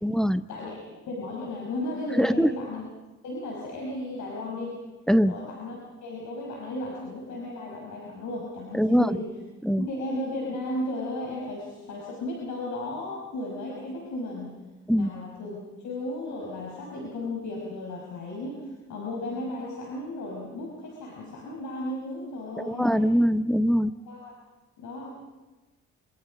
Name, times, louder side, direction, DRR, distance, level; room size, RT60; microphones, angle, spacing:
voice 1, 0.0-0.4 2.2-2.6 5.1-5.3 8.7-9.2 9.6-9.9 14.9-15.1 22.7-23.9, equal, ahead, 13 dB, 0.7 m, -22 dB
voice 2, 1.1-2.8 3.2-4.8 5.2-9.3 9.8-14.5 14.9-15.6 15.8-23.1 24.1-24.3 24.8-25.1, left 1 dB, 70° left, -2 dB, 5.5 m, -35 dB
26.0 x 26.0 x 5.1 m, 1.2 s
cardioid pair, 90°, 30 cm